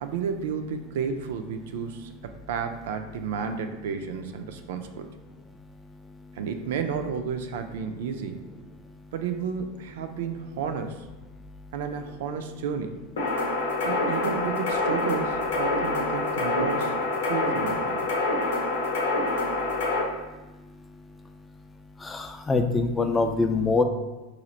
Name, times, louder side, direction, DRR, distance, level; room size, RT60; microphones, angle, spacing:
voice 1, 0.0-2.1 2.5-5.1 6.4-8.4 9.1-11.0 11.7-13.0 13.8-16.9 17.3-18.1, right 6 dB, 75° right, 7 dB, 0.3 m, -32 dB
sound 1, 13.2-20.0, left 2 dB, 85° left, 0.8 m, -26 dB
voice 2, 22.1-23.8, left 3 dB, 15° left, 6 dB, 0.3 m, -24 dB
3.0 x 2.4 x 3.9 m, 1.1 s
supercardioid pair, 120°, 0 cm